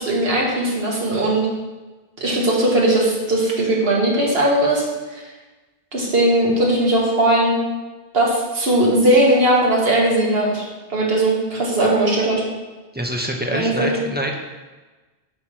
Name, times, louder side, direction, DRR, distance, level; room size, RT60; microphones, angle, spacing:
voice 1, 0.0-1.5 2.2-4.8 5.1-5.2 5.9-7.6 8.1-12.4 13.5-13.9, right 1 dB, 65° right, -3 dB, 1.7 m, -18 dB
voice 2, 12.9-14.3, equal, 10° right, 0 dB, 0.5 m, -25 dB
7.3 x 3.1 x 6.1 m, 1.2 s
omnidirectional pair, 1.1 m